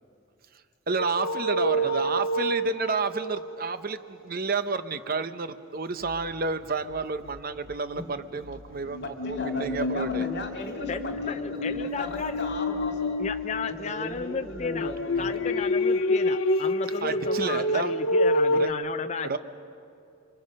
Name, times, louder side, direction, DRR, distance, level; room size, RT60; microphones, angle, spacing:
voice 1, 0.9-10.3 11.1-11.2 17.0-17.9 18.5-18.7 19.2-19.4, right 4 dB, 45° right, 11 dB, 0.8 m, -30 dB
sound 1, 1.0-3.7 8.9-13.9 14.5-18.7, left 1 dB, 90° left, 0.9 m, -28 dB
sound 2, 6.0-15.4, left 1 dB, 75° right, 2.1 m, -49 dB
voice 2, 9.0-13.2 13.6-15.5, left 2 dB, 55° left, 3 dB, 2.5 m, -36 dB
voice 3, 10.9-12.4 13.2-14.9 15.2-19.4, left 5 dB, 35° left, 8 dB, 0.5 m, -34 dB
28.5 x 24.5 x 5.4 m, 2.5 s
head